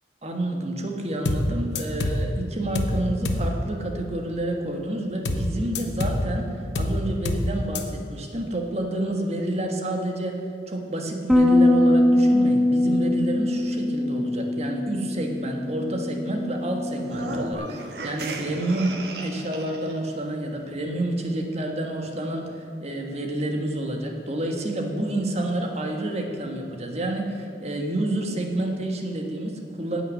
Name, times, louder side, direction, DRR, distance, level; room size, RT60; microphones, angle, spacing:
voice 1, 0.2-30.0, right 1 dB, 35° right, 2 dB, 1.5 m, -29 dB
sound 1, 1.3-1.5 1.8-2.2 2.8-3.0 3.3-3.5 5.3-5.5 5.8-6.2 6.8-7.0 7.3-7.5 7.8-7.9, left 1 dB, 85° left, 1.1 m, -25 dB
Bass guitar, 11.3-17.5, left 1 dB, ahead, 0.8 m, -22 dB
sound 2, 17.0-20.0, right 2 dB, 65° right, 1.3 m, -35 dB
17.5 x 6.3 x 6.4 m, 2.5 s
head